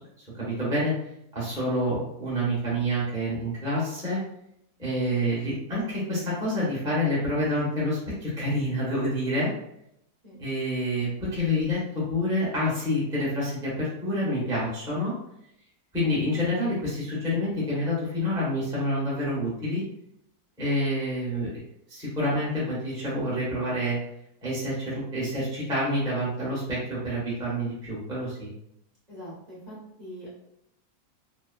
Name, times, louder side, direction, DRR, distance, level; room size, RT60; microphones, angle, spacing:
voice 1, 0.2-0.9 1.3-4.2 4.8-9.5 10.4-15.1 15.9-19.8 20.6-21.5 21.9-24.0 24.4-28.5, equal, 5° right, -9 dB, 0.8 m, -28 dB
voice 2, 29.1-30.3, equal, 30° right, -10 dB, 1.0 m, -42 dB
3.0 x 2.2 x 2.3 m, 0.77 s
omnidirectional pair, 1.7 m